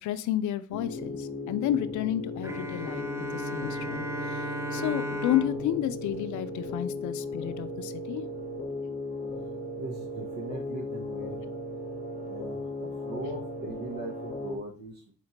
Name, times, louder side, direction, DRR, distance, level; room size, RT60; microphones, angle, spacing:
voice 1, 0.0-3.0 3.3-4.5 4.7-8.3, left 12 dB, 75° left, 13 dB, 0.5 m, -31 dB
sound 1, 0.7-14.6, left 2 dB, 25° left, 0.9 m, -36 dB
Bowed string instrument, 2.4-7.1, right 1 dB, 10° right, 0.4 m, -37 dB
voice 2, 9.8-11.4 12.2-15.1, right 2 dB, 70° right, 1 dB, 0.9 m, -40 dB
4.3 x 4.2 x 2.8 m, 0.42 s
cardioid pair, 90°, 30 cm